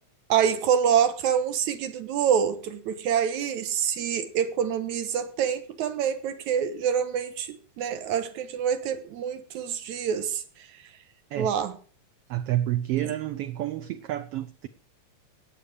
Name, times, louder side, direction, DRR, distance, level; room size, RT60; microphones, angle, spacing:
voice 1, 0.3-10.4 11.4-11.8, right 8 dB, 85° right, 2.6 m, -26 dB
voice 2, 12.3-14.7, right 13 dB, 70° right, 1.5 m, -29 dB
18.5 x 7.7 x 4.9 m
omnidirectional pair, 3.3 m